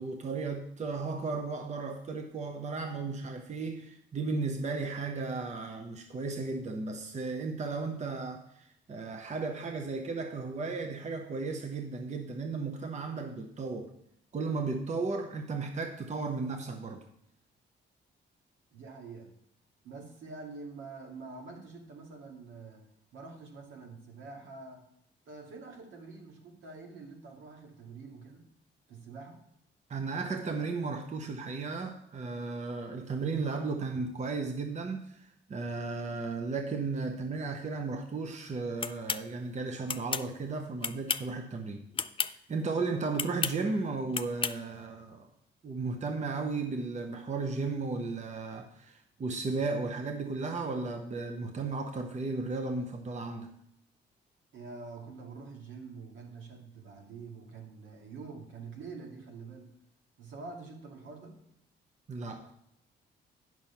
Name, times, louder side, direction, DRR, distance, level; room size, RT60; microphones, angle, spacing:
voice 1, 0.0-13.9 14.3-17.0 29.9-41.8 42.2-45.3 45.6-53.5 62.1-62.5, right 3 dB, 35° right, 5 dB, 0.9 m, -35 dB
voice 2, 18.7-19.3 19.8-22.8 23.1-24.8 25.3-28.4 28.9-29.4 54.5-59.7 60.2-61.4, right 4 dB, 75° right, 0 dB, 2.4 m, -46 dB
sound 1, 38.8-39.2 39.9-40.3 40.8-41.3 41.9-42.3 43.1-43.6 44.1-44.6, left 6 dB, 25° left, 0.4 m, -32 dB
8.9 x 6.2 x 5.7 m, 0.76 s
cardioid pair, 90°, 20 cm